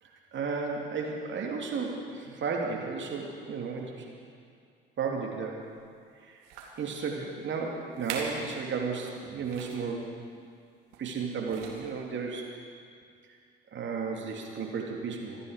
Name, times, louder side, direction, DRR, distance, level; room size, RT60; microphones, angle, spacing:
voice 1, 0.0-4.1 5.0-5.6 6.2-6.4 6.8-10.1 11.0-12.5 13.7-15.4, right 5 dB, 40° right, 0 dB, 2.7 m, -34 dB
sound 1, 5.7-5.9 6.4-6.8 7.5-7.6 7.9-8.4 8.8-8.9 9.4-9.9 10.9-11.2 11.4-12.0 12.7-12.8, right 5 dB, 60° right, 2.5 m, -41 dB
25.5 x 9.7 x 5.1 m, 2.3 s
figure-of-eight pair, 55°, 29 cm